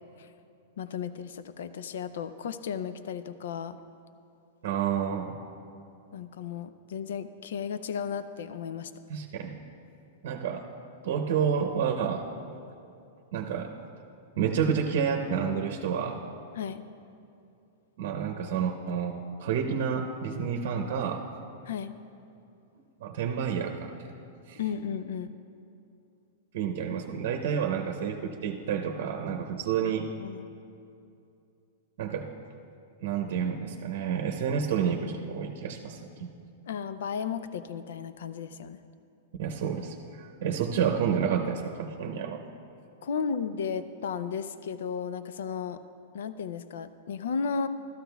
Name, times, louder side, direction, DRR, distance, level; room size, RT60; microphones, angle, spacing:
voice 1, 0.8-3.8 6.1-8.9 16.6-16.8 21.7-21.9 24.6-25.3 30.2-30.5 36.7-38.8 43.0-45.8 46.1-47.7, left 6 dB, 80° left, 12 dB, 0.4 m, -34 dB
voice 2, 4.6-5.3 9.1-9.6 10.2-10.7 11.0-12.3 13.3-13.7 14.4-16.2 18.0-21.3 23.0-24.1 24.5-24.6 26.5-30.1 32.0-32.3 33.0-36.3 39.4-42.4, right 7 dB, 65° right, 4 dB, 0.7 m, -29 dB
13.0 x 13.0 x 2.3 m, 2.6 s
hypercardioid pair, 135°, 0 cm